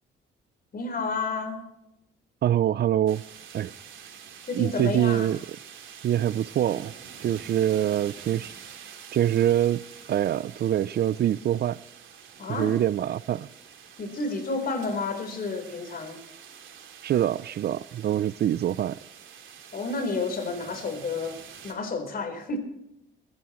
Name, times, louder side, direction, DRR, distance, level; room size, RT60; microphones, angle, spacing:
voice 1, 0.7-1.6 4.5-5.3 12.4-12.7 14.0-16.2 19.7-21.4 21.6-22.6, left 3 dB, 50° left, 4.1 m, -30 dB
voice 2, 2.4-3.2 3.5-3.7 4.5-5.4 6.0-6.9 7.2-8.5 9.1-9.8 10.1-11.8 12.5-13.5 17.0-19.0, right 11 dB, 55° right, 0.5 m, -24 dB
sound 1, 3.1-21.7, right 7 dB, 75° right, 3.5 m, -47 dB
22.5 x 14.0 x 3.1 m
cardioid pair, 90°, 20 cm